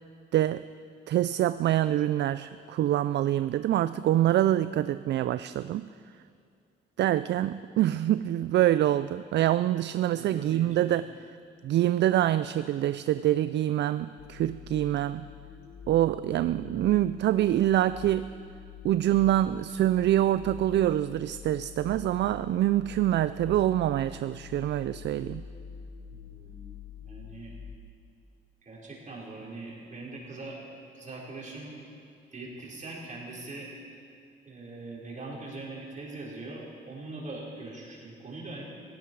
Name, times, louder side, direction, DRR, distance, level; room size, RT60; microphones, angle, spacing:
voice 1, 0.3-0.6 1.1-5.9 7.0-11.4 11.6-15.3 15.9-18.3 18.8-25.4, right 12 dB, 60° right, 14 dB, 0.4 m, -25 dB
voice 2, 10.2-10.7 26.3-26.7 27.0-27.5 28.6-30.6 30.9-31.9 32.3-33.7 34.5-38.6, right 2 dB, 40° right, -4 dB, 4.7 m, -41 dB
sound 1, 14.2-27.8, left 6 dB, 80° left, 2.2 m, -46 dB
17.5 x 16.5 x 4.7 m, 2.4 s
cardioid pair, 90°, 20 cm